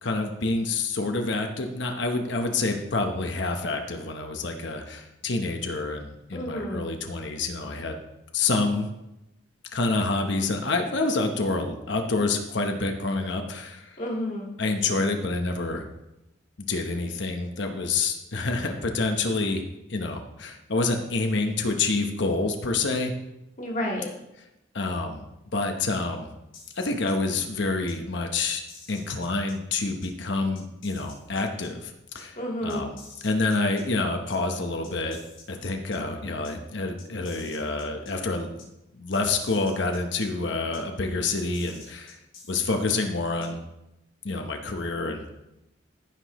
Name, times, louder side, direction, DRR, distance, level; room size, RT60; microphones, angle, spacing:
voice 1, 0.0-8.0 8.3-8.9 9.7-13.9 14.6-15.8 16.7-19.6 19.9-23.1 24.7-25.2 25.5-26.3 26.8-28.6 28.9-32.4 32.6-33.0 33.2-35.2 35.5-38.5 38.9-42.2 42.5-43.6 44.2-45.2, left 3 dB, 70° left, 4 dB, 0.9 m, -27 dB
voice 2, 6.3-6.8 14.0-14.5 23.6-24.1 32.4-32.9, equal, 40° left, -2 dB, 2.0 m, -30 dB
sound 1, 26.5-27.4 27.9-28.0 28.4-29.5 30.0-30.1 30.6-31.7 32.2-32.3 32.7-33.8 34.3-34.4 34.8-36.0 36.4-36.5 37.0-38.1 38.6-38.7 39.1-40.3 40.7-40.8 41.3-42.9 43.4-43.5, left 4 dB, 85° left, 3.0 m, -49 dB
14.5 x 6.0 x 3.1 m, 0.90 s
head